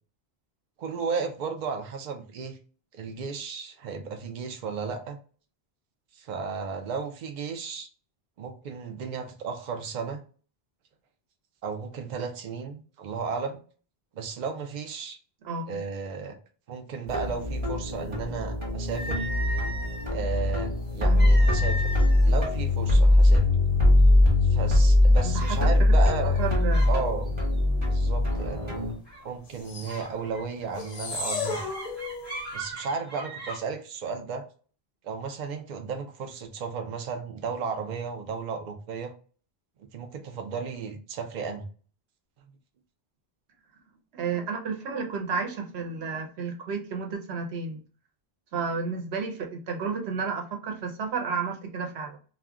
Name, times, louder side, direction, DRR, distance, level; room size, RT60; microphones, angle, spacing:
voice 1, 0.8-2.6 2.9-5.2 6.1-7.9 8.4-10.2 11.6-13.6 14.2-15.2 15.7-16.4 16.7-19.2 20.1-23.5 24.5-26.4 26.9-27.3 27.8-28.9 29.2-31.7 32.5-34.4 35.0-39.1 39.8-41.7, right 5 dB, 55° right, 4 dB, 0.6 m, -34 dB
voice 2, 15.4-15.8 25.2-25.6 25.9-26.0 26.4-26.9 44.1-47.8 48.5-52.2, right 5 dB, 90° right, 3 dB, 1.0 m, -32 dB
sound 1, 17.1-28.9, left 1 dB, 30° right, 1.0 m, -22 dB
sound 2, 19.0-20.2 21.2-22.3 22.6-22.9 23.6-23.7 24.2-24.6 25.4-25.6 26.2-27.0 27.3-27.6 29.1-29.3 29.9-33.6, right 1 dB, 10° right, 1.0 m, -38 dB
sound 3, 29.5-30.0 30.7-32.4, left 4 dB, 45° left, 0.5 m, -34 dB
2.3 x 2.1 x 3.5 m, 0.39 s
omnidirectional pair, 1.0 m